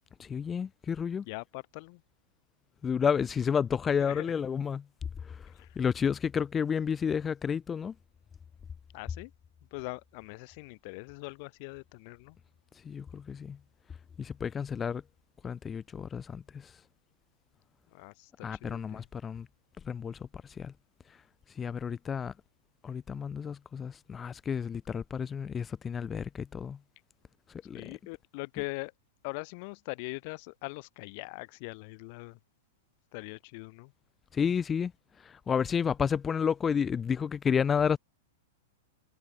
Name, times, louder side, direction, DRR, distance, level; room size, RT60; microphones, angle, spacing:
voice 1, 0.2-1.3 2.8-4.8 5.8-7.9 12.9-13.6 14.2-15.0 15.4-16.4 18.4-19.5 19.9-20.2 20.6-20.7 21.6-22.3 22.8-26.8 27.7-27.8 34.3-34.9 35.5-38.0, left 7 dB, 20° left, 3.5 m, -30 dB
voice 2, 1.2-2.0 4.0-4.3 5.5-5.8 8.9-9.3 9.7-12.4 17.9-19.1 27.7-28.9 29.2-32.4 33.1-33.9, left 30 dB, 50° left, 4.6 m, -42 dB
hypercardioid pair, 115°, 0 cm